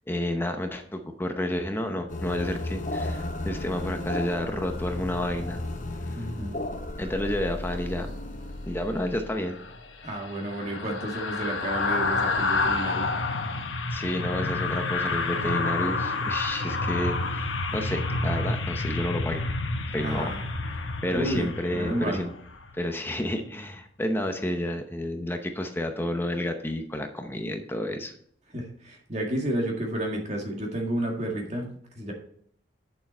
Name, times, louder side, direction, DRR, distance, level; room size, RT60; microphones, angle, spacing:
voice 1, 0.1-5.6 6.2-6.3 7.0-8.1 8.7-9.6 13.9-19.4 19.9-22.3 22.7-28.1, left 1 dB, 10° left, 5 dB, 0.8 m, -30 dB
sound 1, 2.1-10.0, left 1 dB, 40° left, 0.9 m, -34 dB
voice 2, 6.2-6.6 10.0-13.1 20.0-20.4 21.1-21.5 21.7-22.2 28.5-31.7 32.0-32.1, right 1 dB, 35° right, 1 dB, 2.0 m, -31 dB
sound 2, 9.4-22.7 23.1-23.3, left 3 dB, 85° left, 1.0 m, -29 dB
8.3 x 6.9 x 4.3 m, 0.64 s
head